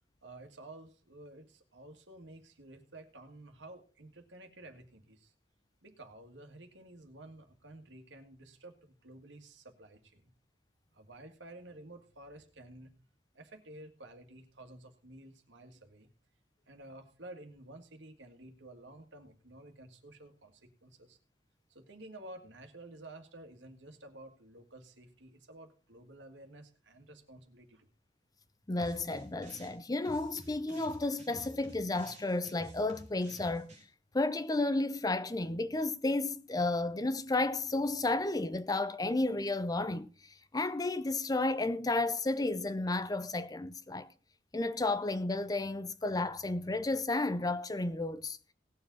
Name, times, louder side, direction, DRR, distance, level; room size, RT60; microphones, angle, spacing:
voice 1, 0.2-5.3 5.8-10.3 10.9-12.9 13.4-16.1 16.7-21.2 21.7-27.9, right 1 dB, 80° right, 1.9 m, -52 dB
voice 2, 28.7-33.7 34.1-40.1 40.5-44.1 44.5-48.4, left 2 dB, 20° left, 0.6 m, -32 dB
sound 1, 28.8-29.8 30.0-33.8, right 1 dB, 40° right, 3.5 m, -51 dB
18.5 x 7.2 x 4.0 m
head